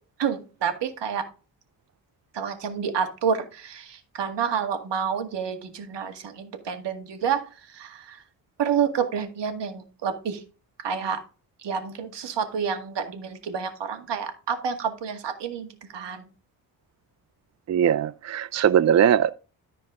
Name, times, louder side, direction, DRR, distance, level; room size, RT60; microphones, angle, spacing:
voice 1, 0.2-1.3 2.3-7.5 7.7-8.2 8.6-10.4 10.8-11.2 11.6-15.7 15.9-16.3, right 7 dB, 70° right, 2.0 m, -29 dB
voice 2, 17.7-19.3, right 9 dB, 40° right, 0.5 m, -20 dB
13.5 x 4.6 x 3.7 m
cardioid pair, 65°, 44 cm